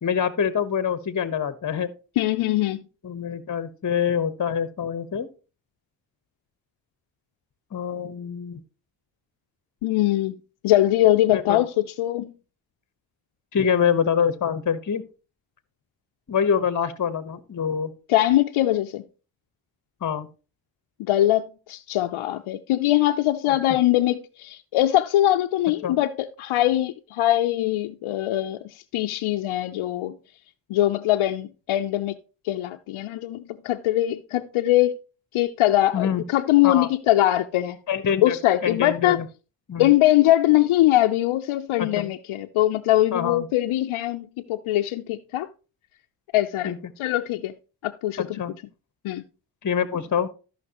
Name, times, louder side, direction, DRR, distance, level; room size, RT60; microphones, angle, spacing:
voice 1, 0.0-1.9 3.0-5.3 7.7-8.6 11.3-11.6 13.5-15.0 16.3-17.9 20.0-20.3 25.8-26.0 35.9-36.2 36.6-36.9 37.9-38.4 38.6-39.2 39.7-39.9 41.8-42.1 43.1-43.5 46.6-46.9 48.2-48.5 49.6-50.3, left 7 dB, 40° left, 1.1 m, -25 dB
voice 2, 2.2-2.8 9.8-10.3 10.6-12.3 18.1-19.0 21.0-30.2 30.7-32.2 32.4-34.9 35.3-37.8 38.2-39.2 39.8-45.5 46.3-46.7 47.0-47.5 47.8-48.4 49.0-49.2, left 14 dB, 80° left, 0.7 m, -22 dB
14.0 x 5.9 x 2.9 m
supercardioid pair, 55°, 48 cm